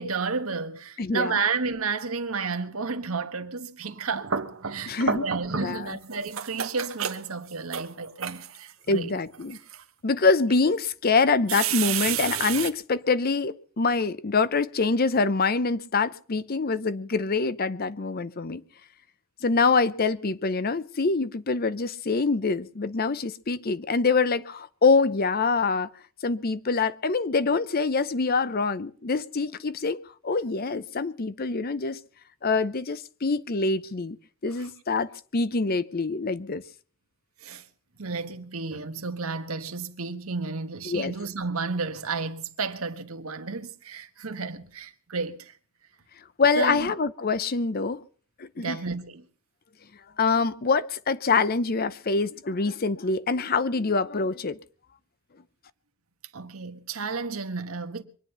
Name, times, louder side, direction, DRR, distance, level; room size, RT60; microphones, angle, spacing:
voice 1, 0.0-4.3 4.6-9.2 34.6-34.7 37.4-37.6 38.0-45.5 46.6-46.9 48.6-49.2 56.3-58.0, right 4 dB, 85° right, 1.4 m, -32 dB
voice 2, 1.0-1.4 4.9-5.2 5.6-6.0 8.9-9.6 10.0-18.6 19.4-25.9 26.2-32.0 32.4-34.2 34.4-36.6 40.9-41.1 46.4-48.0 48.4-48.8 50.2-54.6, left 4 dB, 45° left, 0.7 m, -25 dB
sound 1, 3.9-5.8 6.1-8.7 9.3-9.8 10.5-10.6 11.5-12.7, right 7 dB, 70° right, 1.2 m, -30 dB
24.0 x 9.9 x 5.5 m
head